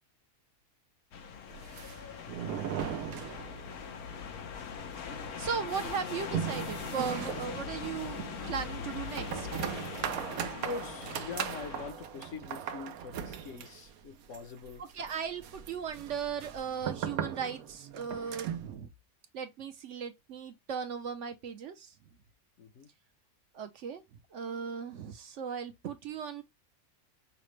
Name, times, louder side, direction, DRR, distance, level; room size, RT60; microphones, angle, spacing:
sound 1, 1.1-11.9, left 7 dB, 90° left, 1.3 m, -41 dB
sound 2, 1.5-3.9 4.1-4.2 4.6-4.7 5.1-18.7, right 9 dB, 85° right, 1.1 m, -39 dB
voice 1, 5.4-9.5 14.9-18.9 19.3-21.9 23.5-24.0 24.3-26.4, right 6 dB, 65° right, 0.9 m, -37 dB
voice 2, 10.4-14.8 22.6-22.9, left 5 dB, 65° left, 1.1 m, -43 dB
5.8 x 2.1 x 3.1 m
omnidirectional pair, 1.5 m